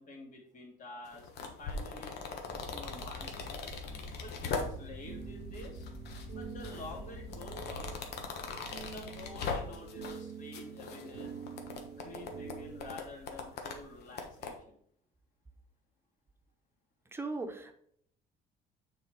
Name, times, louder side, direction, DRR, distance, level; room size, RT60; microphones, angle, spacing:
voice 1, 0.0-3.6 4.2-5.9 6.2-8.0 8.8-11.3 12.0-14.8, left 2 dB, 50° left, -1 dB, 2.5 m, -48 dB
sound 1, 1.1-5.1 5.5-6.3 6.6-10.2 10.5-14.5, left 4 dB, 75° left, 1.2 m, -40 dB
sound 2, 2.5-8.3, left 1 dB, 30° left, 1.4 m, -46 dB
sound 3, 4.4-13.0, right 7 dB, 60° right, 0.6 m, -47 dB
voice 2, 17.1-17.7, right 3 dB, 15° right, 5 dB, 1.1 m, -38 dB
6.7 x 4.2 x 4.8 m, 0.66 s
cardioid pair, 110°, 17 cm